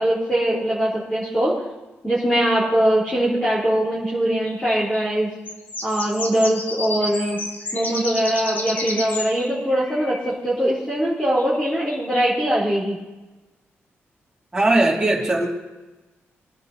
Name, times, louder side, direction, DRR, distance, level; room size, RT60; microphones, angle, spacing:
voice 1, 0.0-1.5 2.0-5.3 5.8-7.4 7.7-13.0, right 1 dB, 10° left, -7 dB, 4.3 m, -21 dB
sound 1, 4.4-5.1 5.5-10.3 11.4-12.3, left 2 dB, 45° left, 1.8 m, -32 dB
voice 2, 14.5-15.5, right 2 dB, 15° right, -4 dB, 3.3 m, -19 dB
25.0 x 10.5 x 3.0 m, 1.1 s
wide cardioid pair, 125°, 4 cm